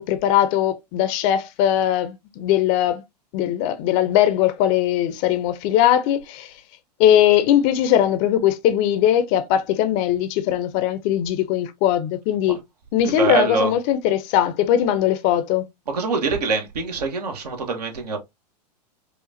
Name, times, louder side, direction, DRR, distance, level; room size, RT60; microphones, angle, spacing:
voice 1, 0.0-3.0 3.3-6.5 7.0-12.6 12.9-15.7, left 11 dB, 40° left, 0.6 m, -20 dB
voice 2, 13.2-13.7 15.9-18.2, right 4 dB, 70° right, 1.3 m, -24 dB
4.9 x 2.4 x 2.6 m
figure-of-eight pair, 100°, 21 cm